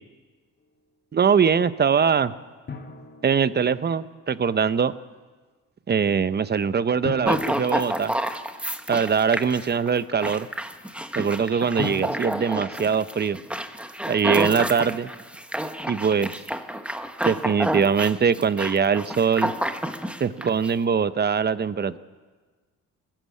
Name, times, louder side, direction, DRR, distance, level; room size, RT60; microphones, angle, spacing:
voice 1, 1.1-2.3 3.2-4.9 5.9-8.1 8.9-10.5 11.2-13.4 14.1-15.1 15.9-16.3 17.2-19.5 20.2-22.0, right 6 dB, 35° right, 14 dB, 0.8 m, -22 dB
Drum, 2.7-4.2 7.0-8.8 11.8-13.4, left 4 dB, 35° left, 2.7 m, -38 dB
sound 1, 7.3-20.7, equal, 5° right, 1.3 m, -29 dB
21.0 x 15.0 x 8.4 m, 1.4 s
cardioid pair, 90°, 30 cm